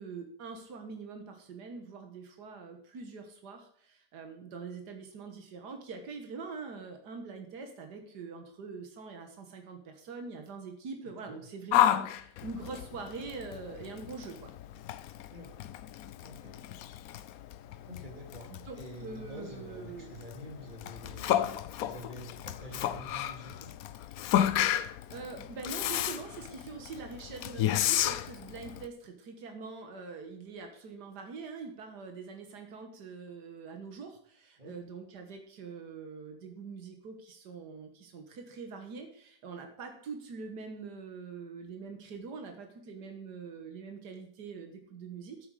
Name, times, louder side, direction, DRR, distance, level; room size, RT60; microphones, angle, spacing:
voice 1, 0.0-14.5 18.5-18.8 19.0-20.1 25.1-45.5, right 4 dB, 90° right, 5 dB, 1.9 m, -44 dB
voice 2, 11.0-11.5 15.3-15.5 16.2-16.6 17.8-21.5 21.8-23.7 34.6-34.7, equal, 30° right, 1 dB, 2.7 m, -47 dB
Yell, 11.7-28.9, left 11 dB, 70° left, 1.0 m, -32 dB
11.0 x 8.9 x 4.9 m, 0.64 s
omnidirectional pair, 1.7 m